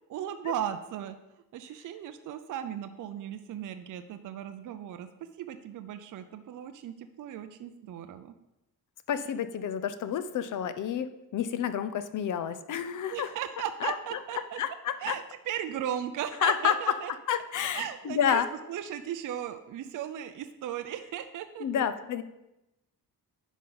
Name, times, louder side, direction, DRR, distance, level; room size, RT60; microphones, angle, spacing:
voice 1, 0.1-1.2 1.5-5.1 5.4-8.3 13.1-14.6 15.0-17.1 17.7-18.4 18.7-21.8, right 10 dB, 55° right, 9 dB, 0.5 m, -36 dB
voice 2, 9.1-13.3 13.8-13.9 14.6-15.2 16.4-17.0 17.3-18.5 21.6-22.2, left 9 dB, 55° left, 12 dB, 0.6 m, -29 dB
10.0 x 5.1 x 3.9 m, 0.94 s
wide cardioid pair, 160°, 37 cm